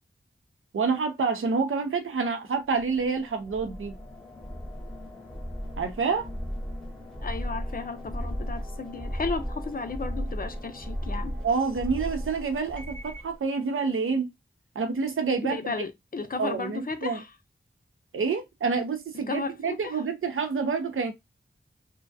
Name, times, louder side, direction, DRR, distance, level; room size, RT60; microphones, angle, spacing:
voice 1, 0.7-4.0 5.8-6.3 11.4-14.3 14.8-15.6 16.4-17.2 18.1-21.1, right 5 dB, 80° right, 0.5 m, -28 dB
sound 1, 2.7-13.4, equal, 5° left, 0.7 m, -36 dB
voice 2, 7.2-11.4 15.4-17.3 19.3-20.0, left 4 dB, 45° left, 0.4 m, -34 dB
2.3 x 2.2 x 2.5 m
wide cardioid pair, 70°, 21 cm